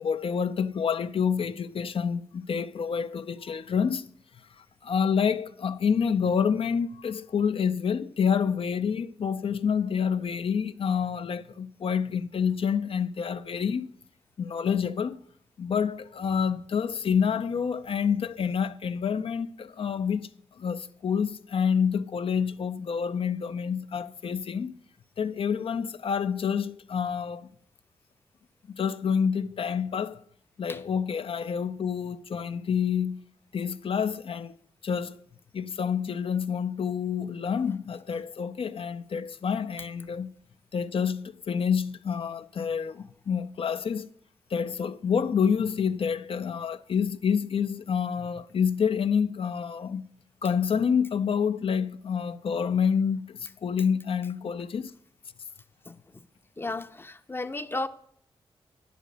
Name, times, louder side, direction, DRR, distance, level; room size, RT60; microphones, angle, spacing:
voice 1, 0.0-4.0 4.8-13.9 14.4-15.2 15.6-20.3 20.6-24.7 25.2-27.5 28.7-30.2 30.6-33.2 33.5-34.5 34.8-35.2 35.5-40.3 40.7-44.1 44.5-50.1 50.4-54.9, left 7 dB, 60° left, 0.5 m, -28 dB
voice 2, 55.9-56.2 56.6-57.9, left 2 dB, 20° left, 0.6 m, -34 dB
10.0 x 5.1 x 6.6 m
cardioid pair, 55°, 10 cm